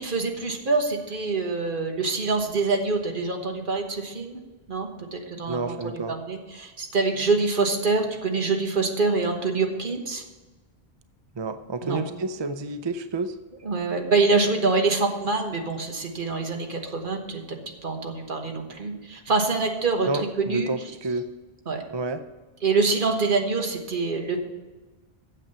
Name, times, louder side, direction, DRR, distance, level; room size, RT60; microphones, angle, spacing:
voice 1, 0.0-4.4 4.7-10.2 11.8-12.0 13.6-17.6 17.8-20.7 21.7-21.8 22.6-24.4, right 3 dB, 55° right, 3 dB, 1.4 m, -25 dB
voice 2, 5.5-6.1 11.4-13.3 20.1-21.3 21.9-22.2, right 3 dB, 35° right, 10 dB, 0.4 m, -29 dB
8.9 x 7.4 x 6.9 m, 1.2 s
omnidirectional pair, 1.0 m